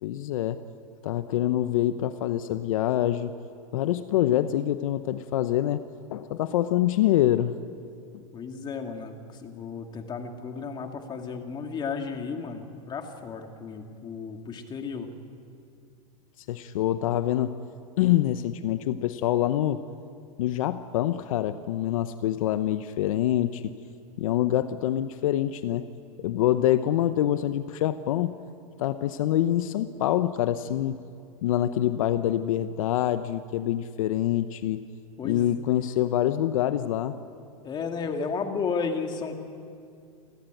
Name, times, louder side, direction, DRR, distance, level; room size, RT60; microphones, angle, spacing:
voice 1, 0.0-0.6 1.0-3.3 3.7-5.8 6.1-7.5 16.5-17.5 18.0-19.8 20.4-23.7 24.2-25.9 26.2-28.4 28.8-31.0 31.4-34.8 35.2-37.2, left 12 dB, 70° left, 12 dB, 0.9 m, -25 dB
voice 2, 8.3-15.1 35.2-35.5 37.6-39.4, left 5 dB, 25° left, 5 dB, 2.3 m, -33 dB
29.5 x 13.5 x 9.2 m, 2.4 s
hypercardioid pair, 130°, 18 cm